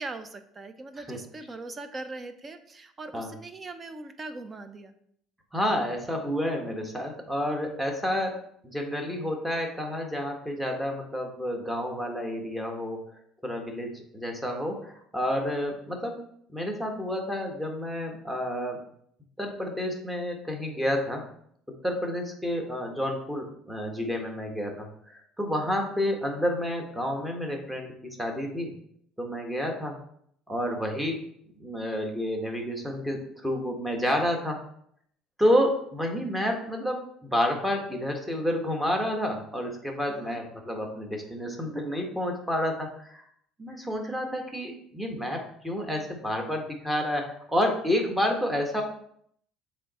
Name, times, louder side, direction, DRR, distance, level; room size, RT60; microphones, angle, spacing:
voice 1, 0.0-4.9 40.1-40.4, right 2 dB, 30° right, 10 dB, 0.7 m, -40 dB
voice 2, 5.5-8.3 8.6-13.0 13.4-16.2 16.5-18.8 19.4-21.2 21.8-28.7 29.2-30.0 30.5-31.2 31.6-34.6 35.4-43.3 43.6-48.8, equal, 10° right, 2 dB, 1.6 m, -29 dB
7.4 x 3.3 x 4.3 m, 0.67 s
hypercardioid pair, 60°, 0 cm